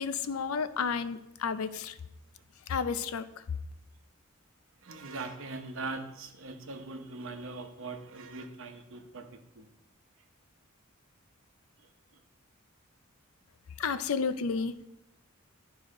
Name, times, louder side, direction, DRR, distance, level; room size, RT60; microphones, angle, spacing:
voice 1, 0.0-2.0 2.7-3.2 13.8-14.9, left 5 dB, 85° left, 13 dB, 0.5 m, -31 dB
voice 2, 4.8-9.3 9.6-9.7, right 3 dB, 65° right, 6 dB, 0.9 m, -41 dB
11.5 x 4.9 x 3.8 m, 0.84 s
head